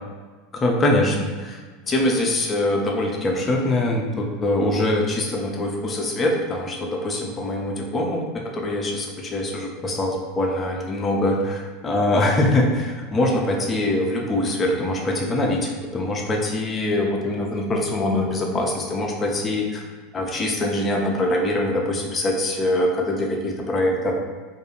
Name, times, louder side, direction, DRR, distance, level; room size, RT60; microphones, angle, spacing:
voice 1, 0.5-1.6 1.9-19.8 20.1-24.2, left 1 dB, 25° left, 0 dB, 0.5 m, -23 dB
2.5 x 2.2 x 3.0 m, 1.4 s
figure-of-eight pair, 80°, 0 cm